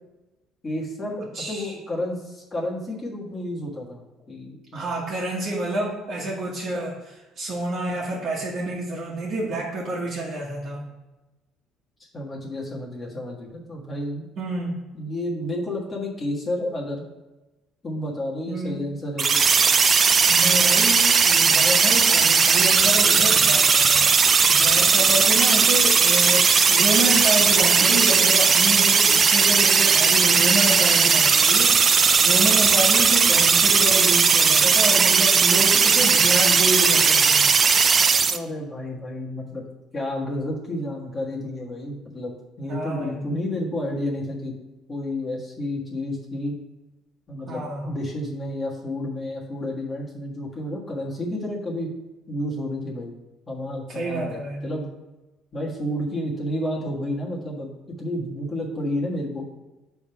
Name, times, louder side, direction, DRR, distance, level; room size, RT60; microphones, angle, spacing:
voice 1, 0.6-4.0 4.3-4.9 12.1-14.3 14.9-17.1 17.8-19.4 38.3-39.6 39.9-44.5 44.9-46.6 47.3-51.9 52.3-53.1 53.5-54.9 55.5-59.4, left 1 dB, 25° left, -3 dB, 1.5 m, -30 dB
voice 2, 1.3-1.7 4.7-10.8 14.4-14.8 18.5-18.8 20.3-24.0 24.5-37.4 42.7-43.2 47.5-48.0 53.9-54.6, right 2 dB, 50° right, -4 dB, 1.4 m, -28 dB
sound 1, 19.2-38.4, right 5 dB, 35° right, 0.4 m, -17 dB
6.9 x 3.5 x 5.8 m, 1.1 s
cardioid pair, 115°, 0 cm